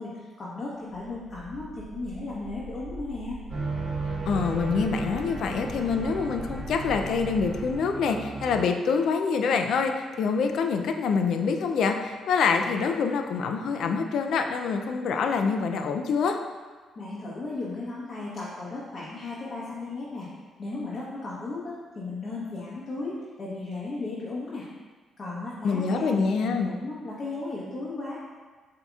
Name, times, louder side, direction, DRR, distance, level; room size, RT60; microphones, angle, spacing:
voice 1, 0.0-3.4 16.9-20.3 20.6-24.6 25.2-28.1, left 2 dB, 40° left, -7 dB, 0.9 m, -35 dB
sound 1, 0.8-7.7, right 1 dB, 85° right, 0.9 m, -41 dB
sound 2, 3.5-8.6, right 3 dB, 35° right, 0.9 m, -35 dB
voice 2, 4.3-16.4 25.6-26.7, left 5 dB, 70° left, 5 dB, 0.4 m, -26 dB
7.7 x 2.8 x 2.3 m, 1.4 s
cardioid pair, 90°, 0 cm